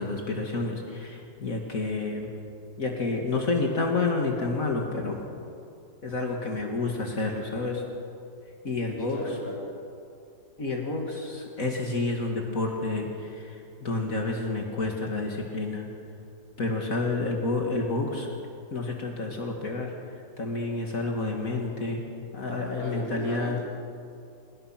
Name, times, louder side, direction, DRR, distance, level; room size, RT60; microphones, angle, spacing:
voice 1, 0.0-2.3 2.8-5.2 6.0-7.8 8.6-9.2 10.6-15.9 16.6-18.3 18.7-19.9 20.4-22.0 22.3-23.6, left 3 dB, 55° left, 1 dB, 2.5 m, -29 dB
voice 2, 9.0-9.5 22.8-23.6, left 1 dB, 35° left, -5 dB, 6.2 m, -36 dB
27.5 x 18.0 x 5.9 m, 2.5 s
omnidirectional pair, 1.7 m